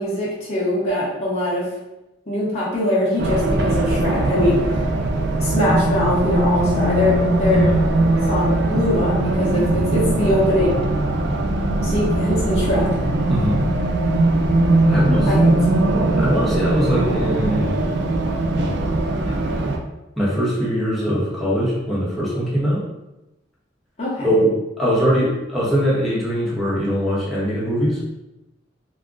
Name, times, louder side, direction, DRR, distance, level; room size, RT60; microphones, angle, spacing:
voice 1, 0.0-1.7 2.3-4.9 5.4-7.7 8.3-10.8 11.8-12.9 15.3-15.4 15.8-15.9 24.0-24.3, left 1 dB, 35° left, -8 dB, 0.8 m, -22 dB
Race car auto racing, 3.2-19.8, right 2 dB, 60° right, 0.4 m, -20 dB
voice 2, 13.3-13.6 14.9-15.4 16.2-17.7 19.3-19.4 20.2-22.8 24.2-28.0, equal, ahead, -8 dB, 0.8 m, -21 dB
2.3 x 2.1 x 3.7 m, 0.96 s
head